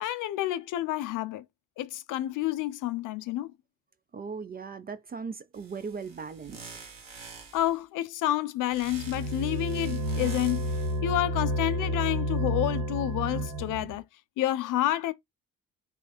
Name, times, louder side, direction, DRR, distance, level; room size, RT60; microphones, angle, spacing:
voice 1, 0.0-1.4 1.8-3.5 7.5-14.0 14.4-15.1, left 14 dB, 50° left, 0.5 m, -29 dB
voice 2, 4.1-6.9, right 5 dB, 25° right, 0.4 m, -38 dB
sound 1, 5.5-7.8 8.7-11.0, right 5 dB, 50° right, 1.4 m, -47 dB
sound 2, 8.8-14.0, equal, 65° right, 1.0 m, -30 dB
3.3 x 2.2 x 4.0 m
figure-of-eight pair, 50°, 42 cm